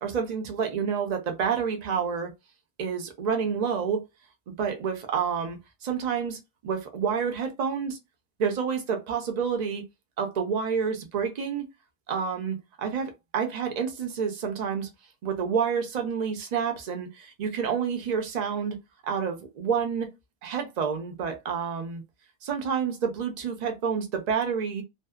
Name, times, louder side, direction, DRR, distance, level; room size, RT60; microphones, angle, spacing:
voice 1, 0.0-2.3 2.8-4.0 4.5-8.0 8.4-9.8 10.2-11.7 12.1-14.9 15.2-18.8 19.0-20.1 20.4-22.0 22.4-24.8, right 6 dB, 45° right, 0.6 m, -29 dB
2.6 x 2.1 x 2.3 m
omnidirectional pair, 1.3 m